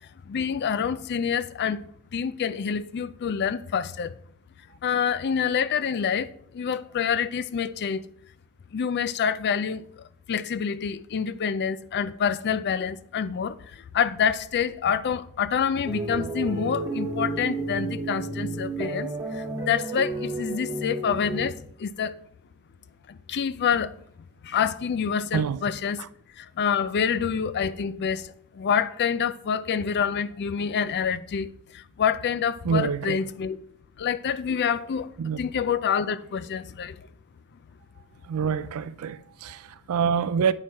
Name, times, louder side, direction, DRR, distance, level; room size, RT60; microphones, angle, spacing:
voice 1, 0.3-1.8 2.1-4.1 4.8-8.0 8.7-9.8 10.3-22.2 23.1-23.9 24.4-26.0 26.4-33.6 34.0-35.1 35.4-37.0, left 7 dB, 50° left, 0.4 m, -27 dB
sound 1, 15.9-21.5, right 2 dB, 15° right, 1.6 m, -31 dB
voice 2, 32.6-33.2 35.2-35.4 38.2-40.5, right 6 dB, 80° right, 0.4 m, -26 dB
8.8 x 4.3 x 4.6 m
head